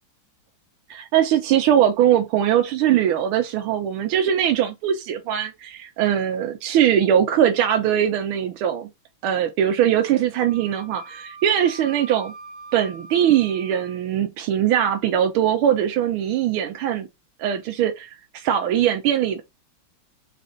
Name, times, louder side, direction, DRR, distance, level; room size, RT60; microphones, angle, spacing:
voice 1, 0.9-8.9 9.2-12.3 12.7-17.1 17.4-19.4, right 10 dB, 80° right, 1.5 m, -21 dB
Wind instrument woodwind instrument, 10.4-14.0, right 3 dB, 60° right, 1.7 m, -42 dB
4.2 x 2.5 x 3.8 m
omnidirectional pair, 2.3 m